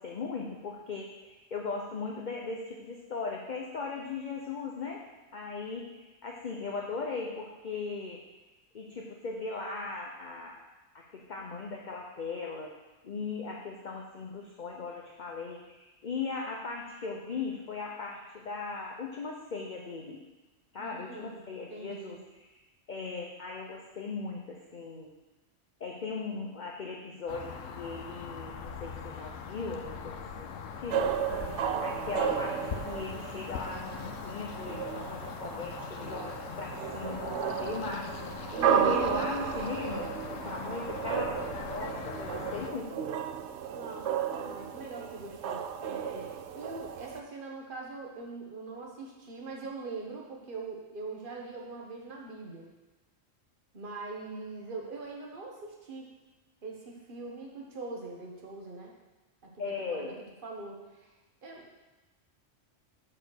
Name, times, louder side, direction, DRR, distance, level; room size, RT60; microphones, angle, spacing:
voice 1, 0.0-5.0 5.3-5.9 6.2-8.2 8.7-10.6 10.9-12.7 13.0-20.2 20.7-22.2 22.9-25.1 25.8-31.0 31.4-31.6 31.8-38.3 38.7-43.1 59.6-60.2, left 4 dB, 45° left, -1 dB, 0.8 m, -38 dB
voice 2, 20.8-22.2 38.5-38.9 43.7-52.7 53.7-56.1 56.6-58.9 59.4-60.1 60.4-61.1 61.4-61.7, right 3 dB, 45° right, -1 dB, 1.4 m, -42 dB
sound 1, 27.3-42.7, left 6 dB, 75° left, 1.0 m, -41 dB
sound 2, 30.9-47.2, right 8 dB, 70° right, 0.8 m, -33 dB
7.7 x 4.3 x 6.4 m, 1.1 s
omnidirectional pair, 1.3 m